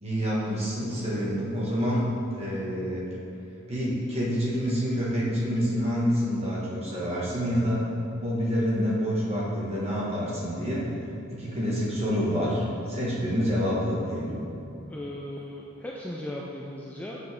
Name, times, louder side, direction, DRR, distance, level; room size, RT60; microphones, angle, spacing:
voice 1, 0.0-2.0 2.3-3.0 3.7-7.9 8.2-10.8 11.3-14.4, equal, 30° right, -6 dB, 1.7 m, -27 dB
voice 2, 14.9-17.2, left 1 dB, 5° left, -3 dB, 0.4 m, -37 dB
9.2 x 6.3 x 3.6 m, 2.7 s
head